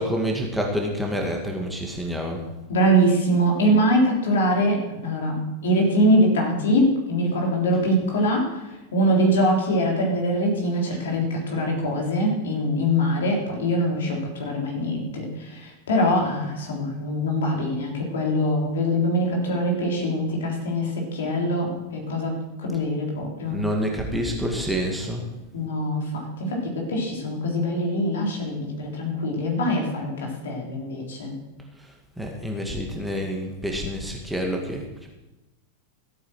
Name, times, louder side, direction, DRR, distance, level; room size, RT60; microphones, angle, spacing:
voice 1, 0.0-2.4 23.5-25.2 32.2-34.8, equal, 5° right, 1 dB, 2.1 m, -27 dB
voice 2, 2.7-8.6 8.9-23.6 25.5-31.4, equal, 60° left, 0 dB, 3.8 m, -23 dB
15.0 x 8.8 x 6.2 m, 1.0 s
figure-of-eight pair, 90°, 0 cm